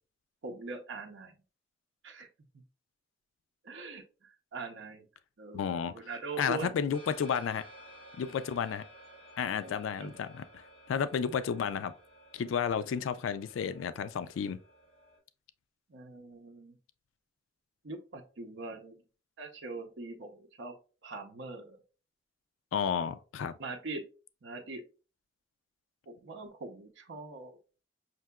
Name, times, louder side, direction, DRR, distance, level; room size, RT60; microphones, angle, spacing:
voice 1, 0.4-1.4 2.0-2.3 2.5-2.6 3.6-5.0 5.4-6.8 9.6-10.1 15.9-16.8 17.8-19.0 19.4-20.7 21.0-21.8 23.6-24.1 24.4-24.8 26.1-27.6, right 3 dB, 65° right, 0.6 m, -42 dB
voice 2, 5.5-5.9 6.4-7.6 8.2-8.8 9.4-10.6 10.9-11.9 12.3-14.6 22.7-23.5, left 7 dB, 90° left, 0.3 m, -32 dB
sound 1, 6.9-15.2, equal, 35° left, 2.3 m, -55 dB
5.8 x 2.7 x 2.2 m
head